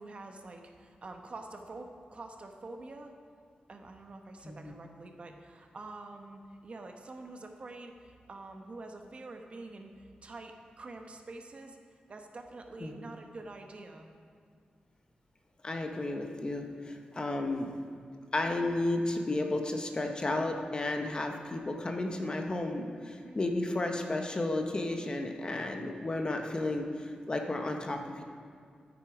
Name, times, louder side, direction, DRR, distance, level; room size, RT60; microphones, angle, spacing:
voice 1, 0.0-3.1 3.7-11.8 12.1-14.1 23.1-23.4, right 2 dB, 45° right, 4 dB, 1.1 m, -46 dB
voice 2, 15.6-17.7 18.3-28.2, left 2 dB, 30° left, 4 dB, 1.1 m, -33 dB
12.5 x 9.2 x 5.0 m, 2.1 s
wide cardioid pair, 100°, 3 cm